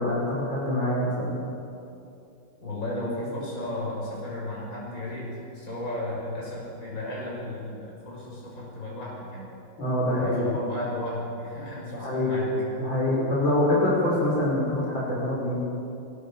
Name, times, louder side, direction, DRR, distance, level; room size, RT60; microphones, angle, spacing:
voice 1, 0.0-1.4 9.8-10.6 11.9-15.6, left 1 dB, 65° left, -6 dB, 6.1 m, -25 dB
voice 2, 2.6-5.3 5.5-9.5 10.1-12.5, left 1 dB, 40° left, -4 dB, 6.5 m, -34 dB
22.0 x 20.0 x 7.1 m, 2.7 s
omnidirectional pair, 2.3 m